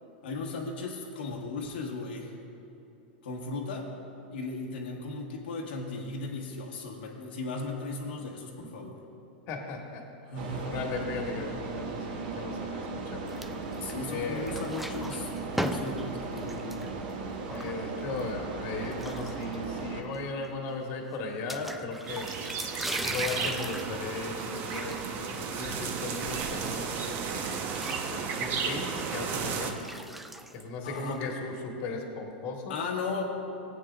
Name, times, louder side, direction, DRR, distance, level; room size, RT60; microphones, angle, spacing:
voice 1, 0.2-2.3 3.2-3.9 4.3-9.0 10.2-10.8 13.8-16.8 30.8-31.2 32.7-33.2, left 3 dB, 80° left, -1 dB, 1.2 m, -36 dB
voice 2, 9.5-10.0 10.6-12.8 13.1-13.4 14.1-14.7 17.5-22.3 22.9-29.8 30.5-32.7, left 3 dB, 45° left, 1 dB, 1.4 m, -37 dB
sound 1, 10.4-20.0, right 3 dB, 60° right, 1.2 m, -37 dB
sound 2, 13.3-14.1 14.4-18.2 18.8-19.8 20.1-20.2 20.4-20.5 21.5-27.0 27.3-31.3, right 1 dB, ahead, 0.3 m, -40 dB
sound 3, 22.1-29.7, right 5 dB, 40° right, 0.8 m, -33 dB
17.0 x 8.2 x 2.4 m, 2.9 s
supercardioid pair, 135°, 5 cm